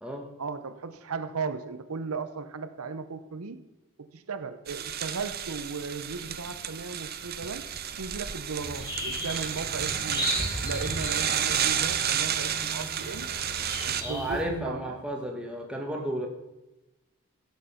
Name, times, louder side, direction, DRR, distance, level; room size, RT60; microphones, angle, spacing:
voice 1, 0.4-3.6 4.0-7.7 8.0-10.3 10.6-13.3 13.9-15.0, right 4 dB, 80° right, 0.7 m, -36 dB
sound 1, 4.7-14.0, right 9 dB, 45° right, 0.7 m, -31 dB
sound 2, 8.6-14.4, equal, 20° left, 3.0 m, -36 dB
voice 2, 14.0-16.3, right 1 dB, 5° right, 1.4 m, -33 dB
15.0 x 7.4 x 5.7 m
head